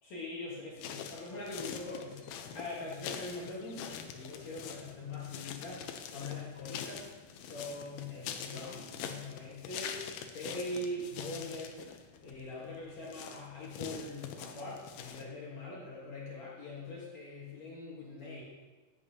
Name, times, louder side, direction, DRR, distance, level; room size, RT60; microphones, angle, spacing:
voice 1, 0.0-5.8 6.1-7.1 7.4-11.9 12.2-18.4, left 2 dB, 55° left, -5 dB, 2.0 m, -42 dB
sound 1, 0.8-15.2, left 8 dB, 75° left, 2.5 m, -44 dB
17.0 x 8.4 x 2.8 m, 1.3 s
omnidirectional pair, 4.9 m